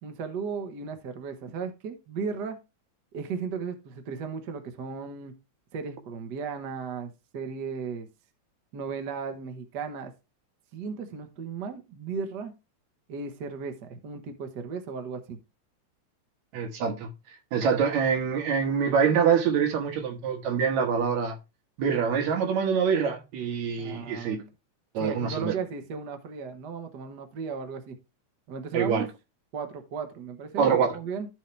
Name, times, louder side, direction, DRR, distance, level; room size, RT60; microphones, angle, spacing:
voice 1, 0.0-2.6 3.1-5.3 5.7-8.1 8.7-10.1 10.7-12.5 13.1-15.4 23.8-24.4 25.0-28.0 28.5-29.1 29.5-31.3, right 5 dB, 60° right, 1.1 m, -35 dB
voice 2, 16.5-17.1 17.5-21.4 21.8-24.4 24.9-25.5 28.7-29.0 30.6-31.0, right 6 dB, 75° right, 2.7 m, -25 dB
13.5 x 4.6 x 3.2 m
omnidirectional pair, 3.3 m